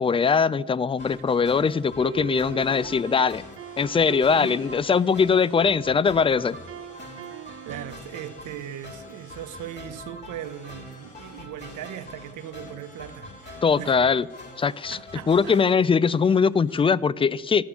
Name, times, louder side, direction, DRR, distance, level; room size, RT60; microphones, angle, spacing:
voice 1, 0.0-3.4 3.8-6.6 13.6-14.3 14.6-15.0 15.3-17.6, left 5 dB, 20° left, 0.3 m, -21 dB
sound 1, 1.0-16.8, left 3 dB, 70° left, 3.4 m, -53 dB
sound 2, 1.0-15.8, left 1 dB, 35° left, 2.6 m, -44 dB
sound 3, 2.0-5.0 6.7-8.1, right 7 dB, 45° right, 0.8 m, -40 dB
voice 2, 7.6-14.0 14.9-15.6, right 11 dB, 80° right, 0.9 m, -38 dB
13.5 x 6.0 x 9.5 m
cardioid pair, 90°, 30 cm